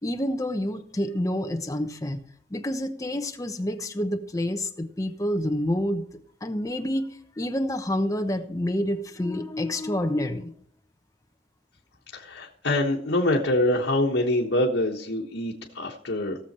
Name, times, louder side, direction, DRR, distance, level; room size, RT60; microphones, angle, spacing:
voice 1, 0.0-2.2 2.5-6.0 6.4-7.1 7.4-10.5, left 1 dB, 20° left, 6 dB, 0.9 m, -28 dB
voice 2, 12.1-16.4, left 1 dB, 85° left, -1 dB, 1.4 m, -25 dB
17.0 x 7.1 x 4.3 m, 0.64 s
head